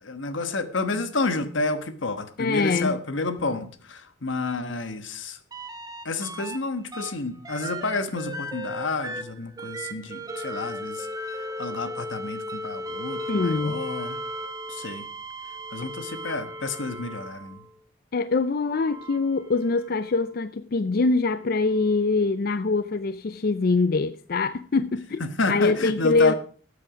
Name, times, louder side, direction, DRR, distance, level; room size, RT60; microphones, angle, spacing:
voice 1, 0.0-5.4 6.0-11.1 11.6-14.2 14.7-15.0 15.7-17.6 25.2-26.4, left 3 dB, 85° left, 1.3 m, -30 dB
voice 2, 2.4-3.0 13.3-13.9 18.1-26.3, left 3 dB, 50° left, 0.5 m, -24 dB
sound 1, 5.5-6.6 6.9-17.7 18.5-20.1 21.8-21.9, equal, 20° right, 1.1 m, -36 dB
13.0 x 8.6 x 5.0 m
head